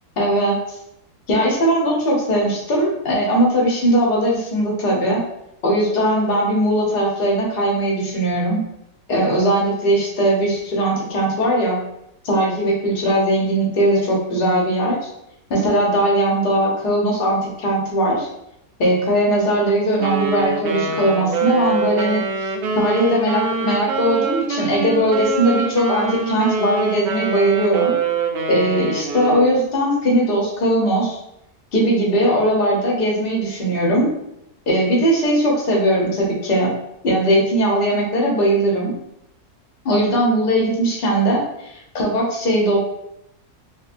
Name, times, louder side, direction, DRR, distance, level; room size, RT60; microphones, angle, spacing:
voice 1, 0.2-0.6 1.3-5.2 5.6-8.6 9.1-11.8 12.2-15.1 15.5-18.3 18.8-27.9 28.5-31.2 31.7-34.1 34.7-36.7 37.0-38.9 39.8-42.8, right 1 dB, 45° left, -2 dB, 0.9 m, -19 dB
Wind instrument woodwind instrument, 20.0-29.6, right 4 dB, 75° right, 0.6 m, -24 dB
3.2 x 3.1 x 2.5 m, 0.80 s
omnidirectional pair, 1.7 m